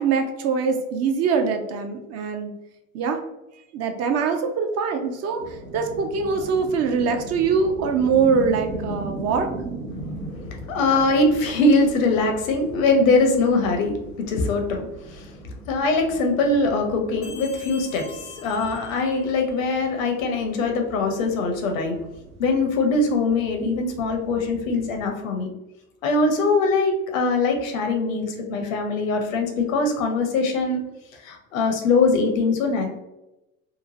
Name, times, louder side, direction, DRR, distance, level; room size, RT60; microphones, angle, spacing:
voice 1, 0.0-2.5 2.9-3.2 3.7-5.4 5.7-9.5, right 5 dB, 40° right, 6 dB, 0.4 m, -23 dB
sound 1, 5.4-25.1, right 2 dB, 85° right, 0.7 m, -39 dB
voice 2, 10.3-15.3 15.7-22.0 22.4-25.5 26.0-30.8 31.2-32.9, left 3 dB, 70° left, 4 dB, 0.7 m, -22 dB
sound 2, 17.2-19.8, left 4 dB, 15° left, 0.5 m, -44 dB
2.9 x 2.4 x 2.6 m, 0.94 s
hypercardioid pair, 70°, 41 cm